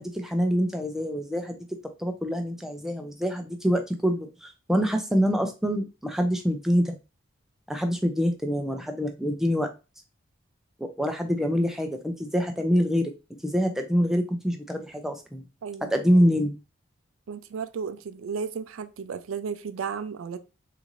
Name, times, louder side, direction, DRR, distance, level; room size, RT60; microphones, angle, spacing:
voice 1, 0.0-1.7 2.0-6.9 7.7-9.7 10.8-13.1 13.4-15.4 15.9-16.6, equal, ahead, 0.4 m, -25 dB
voice 2, 15.6-15.9 17.3-20.4, right 6 dB, 80° right, 0.4 m, -34 dB
3.7 x 2.6 x 3.0 m
head